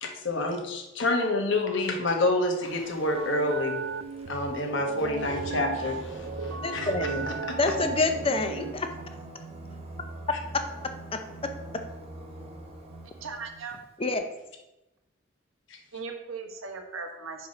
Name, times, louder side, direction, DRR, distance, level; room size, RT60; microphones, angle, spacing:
voice 1, 0.0-3.8 4.3-6.3 6.7-6.9 7.3-7.6, left 2 dB, 65° left, 3 dB, 1.1 m, -28 dB
Singing, 2.5-13.9, right 2 dB, 30° right, 1.1 m, -43 dB
sound 1, 3.1-8.7, right 5 dB, 60° right, 0.4 m, -35 dB
voice 2, 6.6-8.9 10.5-10.6 11.1-11.5 14.0-14.3, left 3 dB, 30° left, 7 dB, 0.6 m, -28 dB
voice 3, 13.2-13.8 15.9-17.5, right 4 dB, 85° right, 5 dB, 1.0 m, -38 dB
5.6 x 4.6 x 5.3 m, 0.95 s
head